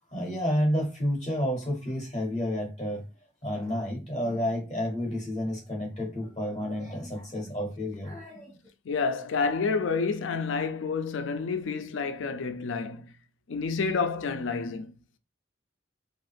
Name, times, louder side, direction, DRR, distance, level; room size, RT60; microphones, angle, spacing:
voice 1, 0.1-3.0 3.4-8.6, equal, 30° left, 0.7 m, -30 dB
voice 2, 8.9-13.1 13.5-14.9, left 4 dB, 75° left, 0.4 m, -29 dB
2.6 x 2.4 x 3.3 m
head